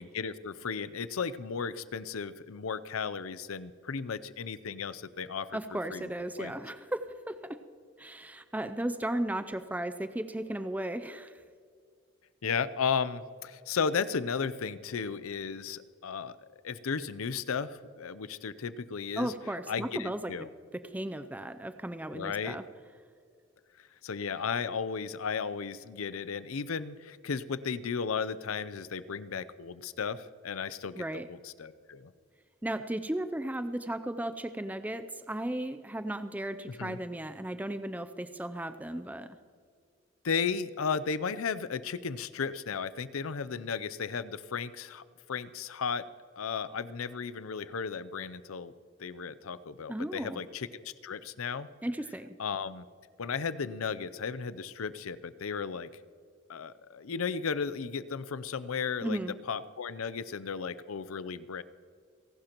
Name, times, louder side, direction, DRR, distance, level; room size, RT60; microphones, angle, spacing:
voice 1, 0.0-5.6 5.9-6.1 6.4-6.5 12.4-16.4 16.6-19.3 19.7-20.5 22.1-22.6 23.8-32.1 36.8-37.0 40.2-46.1 46.4-48.7 49.0-51.7 52.4-52.8 53.2-55.9 56.5-59.2 59.5-61.6, left 6 dB, 90° left, 16 dB, 0.6 m, -35 dB
voice 2, 5.5-7.6 8.0-11.4 19.2-20.3 20.7-22.6 31.0-31.3 32.6-39.4 49.9-50.4 51.8-52.4 59.0-59.4, right 1 dB, 10° right, 11 dB, 0.4 m, -35 dB
30.0 x 11.5 x 3.0 m, 2.2 s
head